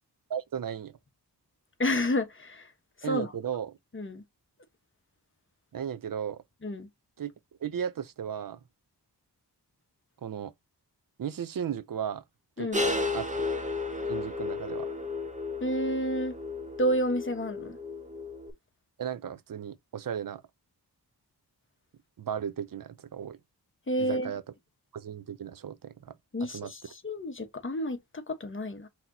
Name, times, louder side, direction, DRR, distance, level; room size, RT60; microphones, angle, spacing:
voice 1, 0.3-0.9 3.0-3.8 5.7-6.4 7.2-7.3 7.6-8.6 10.2-10.5 11.2-12.2 12.6-13.5 14.1-14.9 19.0-20.4 22.2-23.4 24.0-24.4 24.9-26.1 26.5-26.7, right 8 dB, 55° right, 0.5 m, -35 dB
voice 2, 1.8-2.7 3.0-3.3 3.9-4.2 6.6-6.9 12.6-12.8 15.6-16.4 16.8-17.8 23.9-24.3 26.3-28.9, equal, 30° left, 1.0 m, -30 dB
sound 1, 12.7-18.5, left 3 dB, 20° right, 0.9 m, -33 dB
5.8 x 2.9 x 2.7 m
wide cardioid pair, 95°, 41 cm